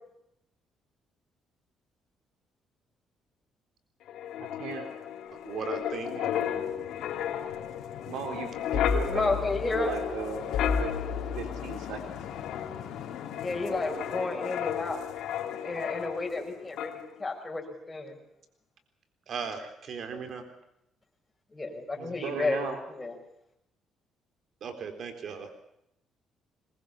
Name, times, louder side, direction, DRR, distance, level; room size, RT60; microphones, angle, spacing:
Wind, 4.1-16.5 16.8-17.0, left 8 dB, 80° left, 2.8 m, -33 dB
voice 1, 4.4-4.9 6.2-6.6 8.1-9.3 9.8-10.9 11.3-12.0 22.0-22.8, right 6 dB, 85° right, 4 dB, 3.3 m, -37 dB
voice 2, 5.4-6.2 19.3-20.4 24.6-25.6, right 5 dB, 55° right, 6 dB, 3.8 m, -37 dB
voice 3, 9.1-9.9 13.4-15.0 15.6-18.2 21.5-23.1, left 3 dB, 20° left, 1 dB, 6.1 m, -32 dB
22.5 x 20.5 x 7.0 m, 0.79 s
cardioid pair, 100°, 0 cm